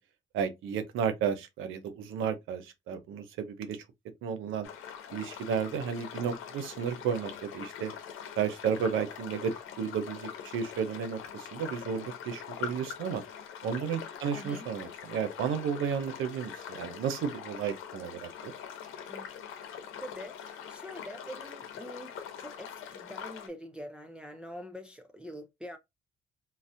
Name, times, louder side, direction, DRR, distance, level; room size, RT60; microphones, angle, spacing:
voice 1, 0.3-3.8 4.2-4.7 5.1-7.9 8.4-13.2 13.6-18.5, right 7 dB, 85° right, 0.8 m, -33 dB
sound 1, 4.6-23.5, left 8 dB, 90° left, 0.9 m, -43 dB
voice 2, 14.3-14.7 19.1-19.3 20.0-25.8, equal, 5° right, 0.5 m, -45 dB
3.9 x 2.7 x 2.5 m
cardioid pair, 90°, 20 cm